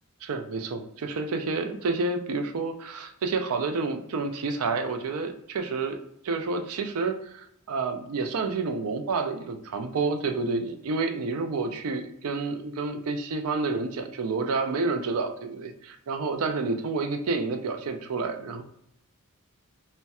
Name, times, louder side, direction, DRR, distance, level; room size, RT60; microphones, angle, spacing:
voice 1, 0.2-6.0 6.2-18.6, right 3 dB, 80° right, 6 dB, 0.4 m, -29 dB
4.1 x 2.2 x 2.3 m, 0.73 s
head